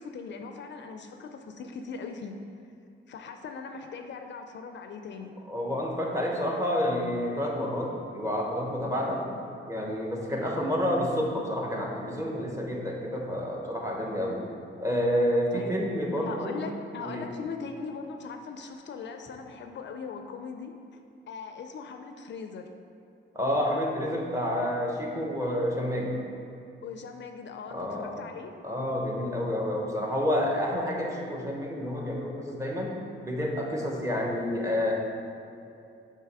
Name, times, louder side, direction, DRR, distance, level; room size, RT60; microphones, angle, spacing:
voice 1, 0.0-2.4 3.1-5.3 15.5-15.8 16.2-20.7 21.3-22.7 26.8-28.5, left 5 dB, 60° left, 5 dB, 0.4 m, -40 dB
voice 2, 5.5-9.3 9.7-14.4 14.8-16.6 17.0-17.3 23.3-26.2 27.7-28.1 28.6-32.9 33.2-34.9, equal, 15° right, -1 dB, 0.9 m, -29 dB
6.8 x 3.0 x 4.7 m, 2.7 s
cardioid pair, 110°, 21 cm